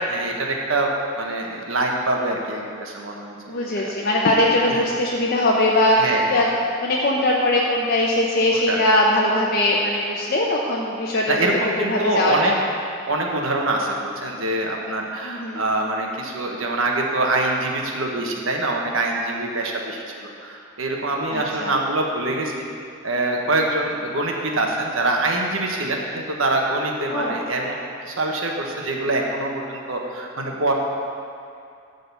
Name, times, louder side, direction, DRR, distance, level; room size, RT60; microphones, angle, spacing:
voice 1, 0.1-3.9 4.7-4.8 6.0-6.4 8.5-8.8 11.3-12.5 13.1-22.6 23.0-30.7, right 2 dB, 80° right, 0 dB, 1.3 m, -24 dB
voice 2, 3.5-6.5 6.8-11.4 11.8-12.5 15.2-15.6 21.3-21.8 27.1-27.3, left 1 dB, 50° left, -3 dB, 0.7 m, -20 dB
12.0 x 4.0 x 6.9 m, 2.4 s
head